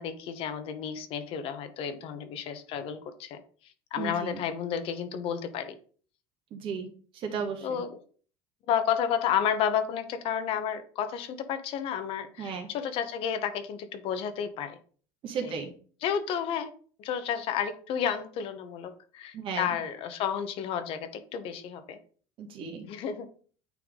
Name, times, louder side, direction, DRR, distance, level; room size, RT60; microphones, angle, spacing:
voice 1, 0.0-5.7 7.6-8.0 8.7-14.8 15.4-15.6 16.0-16.7 17.0-22.0 22.8-23.3, left 8 dB, 50° left, 9 dB, 0.9 m, -31 dB
voice 2, 4.0-4.4 6.5-6.9 7.1-7.8 12.4-12.7 15.2-15.7 19.3-19.7 22.4-22.8, right 6 dB, 45° right, 4 dB, 1.6 m, -34 dB
9.1 x 3.5 x 3.7 m, 0.43 s
cardioid pair, 135°, 12 cm